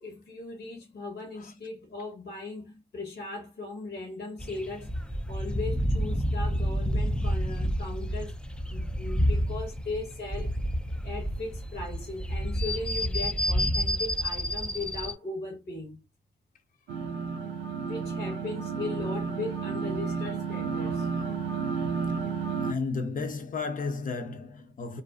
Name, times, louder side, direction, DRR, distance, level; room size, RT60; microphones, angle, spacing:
voice 1, 0.0-8.3 8.7-10.5 11.0-16.0 17.8-21.8, left 3 dB, 60° left, 1.2 m, -38 dB
sound 1, 4.4-15.1, equal, 5° left, 0.4 m, -29 dB
sound 2, 16.9-22.7, right 5 dB, 80° right, 0.5 m, -31 dB
voice 2, 22.6-25.0, left 4 dB, 45° left, 0.7 m, -33 dB
2.5 x 2.3 x 2.3 m
hypercardioid pair, 40°, 19 cm